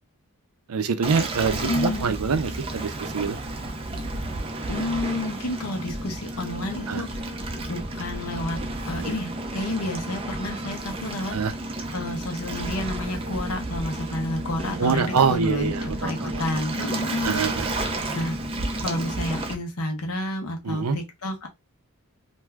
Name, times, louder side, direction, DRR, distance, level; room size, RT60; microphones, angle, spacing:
voice 1, 0.7-3.4 6.9-7.0 11.3-11.5 14.8-16.4 17.2-17.7 20.6-21.0, right 5 dB, 85° right, 0.5 m, -25 dB
Waves surf, 1.0-19.5, right 1 dB, 25° right, 0.4 m, -32 dB
voice 2, 1.6-2.1 4.7-7.3 7.7-8.6 8.9-11.4 11.9-17.4 18.1-18.4 18.8-21.5, left 1 dB, 85° left, 0.9 m, -30 dB
2.6 x 2.3 x 3.3 m
head